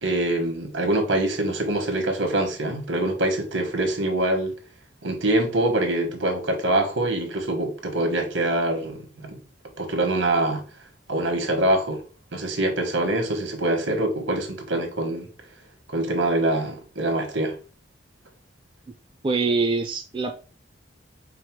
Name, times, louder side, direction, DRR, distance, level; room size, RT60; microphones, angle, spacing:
voice 1, 0.0-4.5 5.0-9.4 9.8-10.6 11.1-12.0 12.3-15.3 15.9-17.6, right 1 dB, 85° right, 1.3 m, -24 dB
voice 2, 19.2-20.3, right 3 dB, 25° right, 0.4 m, -24 dB
4.6 x 2.1 x 4.6 m
head